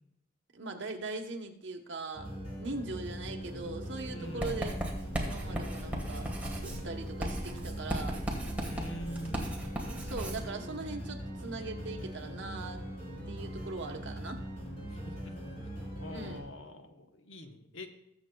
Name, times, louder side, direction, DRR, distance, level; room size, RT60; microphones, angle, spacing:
voice 1, 0.5-2.3 2.6-4.8 5.2-6.3 6.6-8.2 10.0-12.8 13.3-14.4 16.1-16.4, right 3 dB, 65° right, 3 dB, 1.0 m, -40 dB
sound 1, 2.1-16.4, equal, 30° left, 3.3 m, -41 dB
voice 2, 4.1-4.7 5.5-5.7 8.6-9.7 14.9-15.3 15.8-17.9, equal, 80° left, 5 dB, 1.0 m, -45 dB
Writing, 4.4-10.5, equal, 10° right, 1.5 m, -36 dB
20.5 x 7.2 x 2.3 m, 0.81 s
head